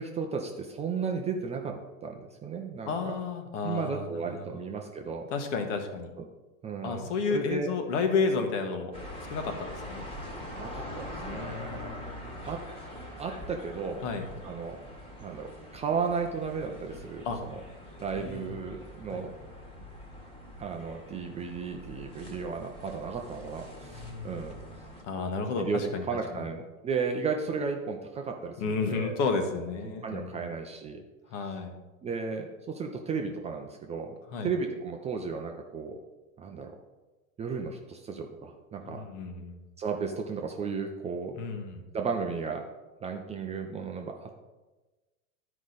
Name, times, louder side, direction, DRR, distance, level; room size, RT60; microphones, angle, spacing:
voice 1, 0.0-3.2 3.6-5.3 6.6-7.7 10.5-12.0 12.4-12.6 13.2-14.0 14.4-14.8 15.2-15.5 15.7-17.6 18.0-19.3 20.6-24.5 25.6-25.8 26.1-29.2 29.8-31.0 32.0-34.1 34.4-36.0 36.4-36.7 37.4-39.0 39.8-41.4 41.9-42.6 43.0-44.3, right 5 dB, 15° right, 3 dB, 0.5 m, -34 dB
voice 2, 2.9-4.6 5.3-6.1 6.8-8.9 9.3-10.0 11.2-12.5 14.0-14.2 17.2-17.4 18.1-18.5 19.1-19.2 23.9-24.4 25.0-26.0 26.3-26.5 28.6-30.5 31.3-31.8 34.3-34.5 38.9-39.6 41.4-41.8, left 4 dB, 60° left, 5 dB, 1.4 m, -32 dB
sound 1, 8.9-25.0, left 1 dB, 15° left, 1.6 m, -44 dB
10.5 x 5.0 x 4.0 m, 1.2 s
hypercardioid pair, 110°, 42 cm